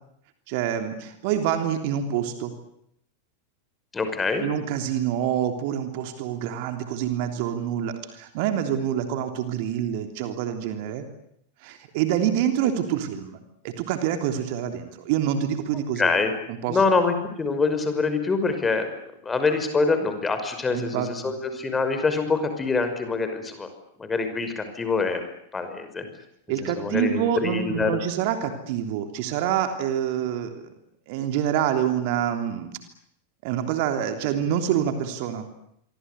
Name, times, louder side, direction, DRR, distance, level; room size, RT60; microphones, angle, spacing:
voice 1, 0.5-2.5 4.4-11.0 11.6-13.4 13.6-16.1 16.5-16.8 20.7-21.3 26.5-30.7 31.1-32.7 33.4-35.4, right 10 dB, 45° right, 7 dB, 3.3 m, -26 dB
voice 2, 3.9-4.5 16.0-16.3 16.7-18.9 19.2-23.7 24.0-25.2 25.5-26.0 26.6-28.0, left 4 dB, 15° left, 8 dB, 5.8 m, -25 dB
28.0 x 24.5 x 8.4 m, 0.74 s
figure-of-eight pair, 90°, 0 cm